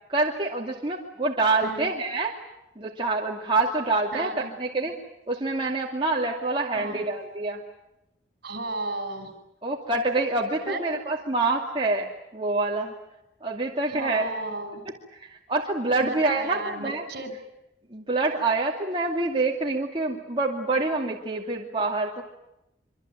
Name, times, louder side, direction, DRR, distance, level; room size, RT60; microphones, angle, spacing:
voice 1, 0.1-2.3 2.8-5.0 5.3-7.6 9.6-12.9 13.4-14.3 15.2-17.0 17.9-22.2, right 3 dB, 30° right, -1 dB, 2.5 m, -26 dB
voice 2, 4.1-4.9 6.7-7.0 8.4-9.3 10.6-10.8 13.8-14.8 16.0-17.3, right 2 dB, 60° right, 8 dB, 5.9 m, -34 dB
25.5 x 25.0 x 9.1 m, 0.87 s
head